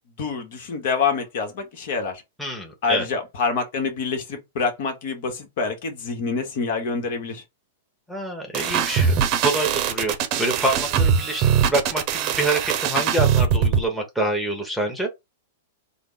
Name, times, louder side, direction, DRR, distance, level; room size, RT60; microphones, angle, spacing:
voice 1, 0.2-2.2 2.8-7.4, left 5 dB, 60° left, 1.1 m, -26 dB
voice 2, 2.4-3.1 8.1-10.1 10.4-15.1, right 1 dB, ahead, 1.0 m, -26 dB
sound 1, 8.5-13.8, right 7 dB, 45° right, 0.7 m, -21 dB
3.7 x 2.1 x 3.7 m
hypercardioid pair, 125°, 0 cm